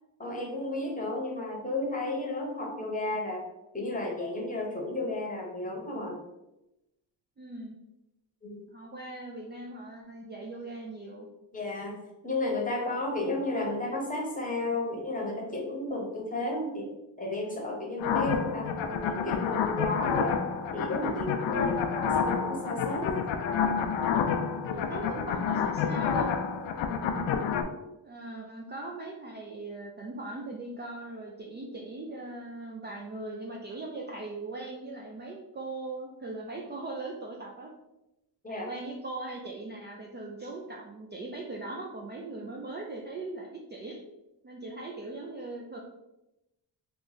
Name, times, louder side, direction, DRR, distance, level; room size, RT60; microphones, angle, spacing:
voice 1, 0.2-3.4 3.7-6.2 8.4-8.7 11.5-12.0 12.2-16.9 17.2-20.4 20.7-21.7 21.9-23.2 26.9-27.0 38.4-38.7, left 2 dB, 20° left, 0 dB, 0.9 m, -33 dB
voice 2, 7.4-7.8 8.7-11.3 21.5-21.8 24.7-26.3 26.8-27.5 28.0-37.7 38.5-44.0 44.4-45.8, right 2 dB, 25° right, -1 dB, 0.4 m, -40 dB
sound 1, 18.0-27.6, left 6 dB, 80° left, 0.5 m, -29 dB
3.1 x 2.3 x 3.9 m, 0.93 s
cardioid pair, 100°, 45 cm